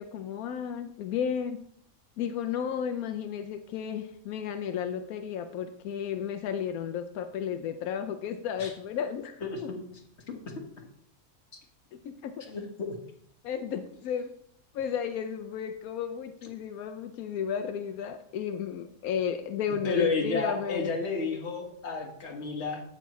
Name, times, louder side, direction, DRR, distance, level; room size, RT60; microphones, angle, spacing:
voice 1, 0.0-1.6 2.2-9.7 12.0-12.3 13.4-14.3 14.7-20.9, left 8 dB, 90° left, 7 dB, 1.1 m, -33 dB
voice 2, 12.5-12.9 19.8-22.8, left 4 dB, 50° left, 2 dB, 1.6 m, -31 dB
15.0 x 5.7 x 3.1 m, 0.70 s
omnidirectional pair, 1.5 m